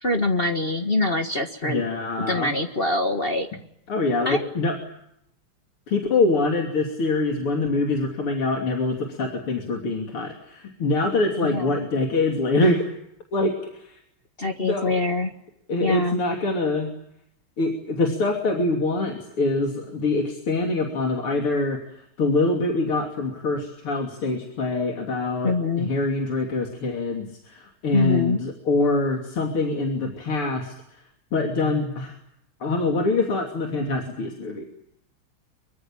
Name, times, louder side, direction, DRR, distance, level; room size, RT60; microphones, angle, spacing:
voice 1, 0.0-1.8 2.2-3.5 4.2-4.4 11.4-11.8 14.4-15.3 15.8-16.2 25.4-25.9 27.9-28.4, left 2 dB, 30° left, 5 dB, 1.6 m, -24 dB
voice 2, 1.6-2.5 3.9-4.7 5.9-12.8 13.3-14.0 14.6-15.0 15.7-16.9 17.6-21.8 22.2-25.5 25.8-30.7 31.3-32.2 32.6-34.7, left 2 dB, 85° left, 2 dB, 3.9 m, -24 dB
25.0 x 23.5 x 8.9 m, 0.78 s
omnidirectional pair, 2.3 m